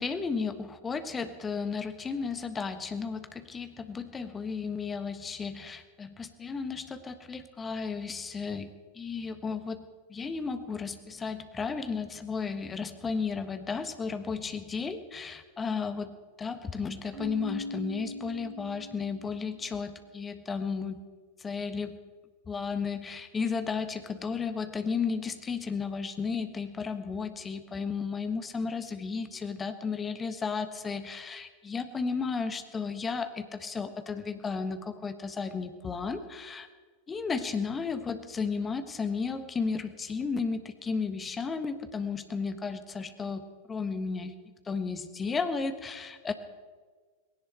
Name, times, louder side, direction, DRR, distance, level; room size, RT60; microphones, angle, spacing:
voice 1, 0.0-8.7 8.9-9.8 10.1-21.0 21.4-22.0 22.5-36.7 37.1-43.4 43.7-44.3 44.6-46.3, left 5 dB, 15° left, 10 dB, 1.3 m, -34 dB
Keyboard (musical), 17.1-19.8, left 3 dB, 20° right, 5.1 m, -40 dB
19.0 x 17.0 x 4.4 m, 1.5 s
figure-of-eight pair, 90°, 0 cm